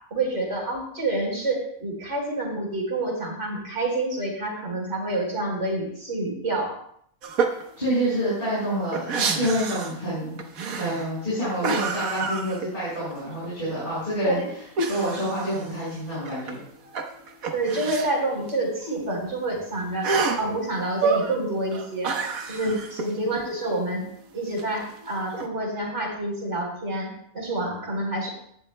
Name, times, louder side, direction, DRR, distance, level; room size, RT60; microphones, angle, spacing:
voice 1, 0.0-6.7 14.2-14.5 17.5-20.1 20.4-22.2 22.5-24.0 24.3-28.3, right 2 dB, 55° right, -2 dB, 4.5 m, -28 dB
sound 1, 7.2-7.6 8.0-8.1 8.4-10.0 10.4-11.2 11.6-13.1 13.4-13.5 14.8-16.6 16.9-18.1 18.5-18.6 18.8-18.9 20.0-20.5 20.9-21.4 21.7-23.1 24.6-25.5, right 4 dB, 75° right, 1.5 m, -28 dB
voice 2, 7.8-10.4 10.7-14.4 14.9-16.6 22.6-22.7, equal, 35° left, -10 dB, 5.5 m, -27 dB
17.5 x 11.5 x 2.2 m, 0.67 s
omnidirectional pair, 1.5 m